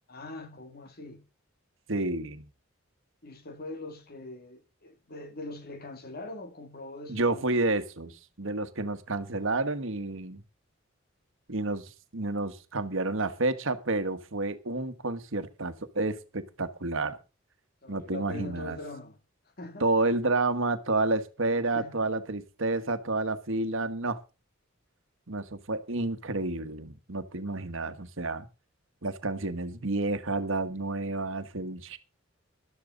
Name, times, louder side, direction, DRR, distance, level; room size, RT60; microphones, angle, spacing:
voice 1, 0.1-1.2 3.2-7.7 17.8-19.2 19.6-20.1 21.7-22.0, left 2 dB, 50° left, 2.3 m, -42 dB
voice 2, 1.9-2.5 7.1-10.4 11.5-17.2 17.9-18.8 19.8-24.2 25.3-28.5 29.0-32.0, right 2 dB, 70° right, 1.4 m, -30 dB
12.5 x 12.5 x 3.9 m
head